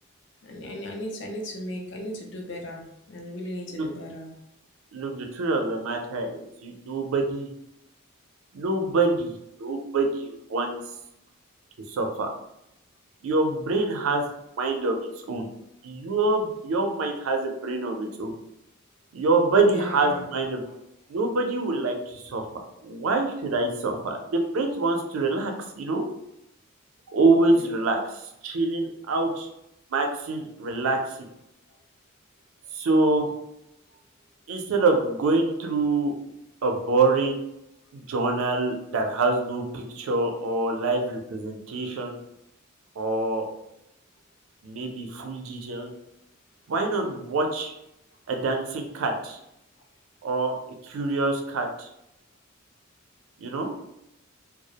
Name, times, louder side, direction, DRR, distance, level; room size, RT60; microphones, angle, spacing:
voice 1, 0.4-4.3 19.7-20.3 27.6-27.7, left 1 dB, 55° left, 1 dB, 0.5 m, -36 dB
voice 2, 4.9-7.5 8.5-10.8 11.9-12.3 13.2-14.2 14.6-15.0 15.3-15.5 15.8-18.3 19.1-20.6 21.1-26.0 27.1-29.5 29.9-31.2 32.7-33.3 34.5-36.1 36.6-37.4 37.9-42.2 43.0-43.5 44.6-45.9 46.7-47.7 48.3-49.4 50.2-50.5 50.8-51.9 53.4-53.7, right 3 dB, 80° right, 4 dB, 0.4 m, -25 dB
2.3 x 2.0 x 2.8 m, 0.83 s
head